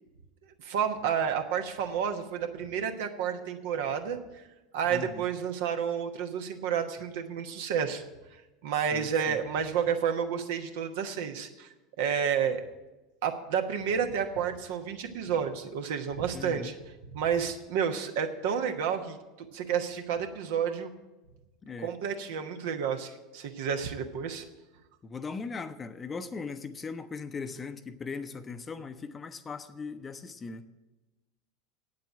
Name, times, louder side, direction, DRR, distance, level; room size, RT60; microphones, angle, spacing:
voice 1, 0.6-4.2 4.7-8.0 8.6-11.7 12.0-12.6 13.2-16.7 17.1-19.2 19.5-20.9 21.8-24.4, right 7 dB, 60° right, 6 dB, 1.1 m, -30 dB
voice 2, 4.9-5.3 8.9-9.4 16.3-16.7 21.6-21.9 25.0-30.6, left 4 dB, 25° left, 10 dB, 0.8 m, -39 dB
9.1 x 7.5 x 8.9 m, 1.1 s
figure-of-eight pair, 80°, 0 cm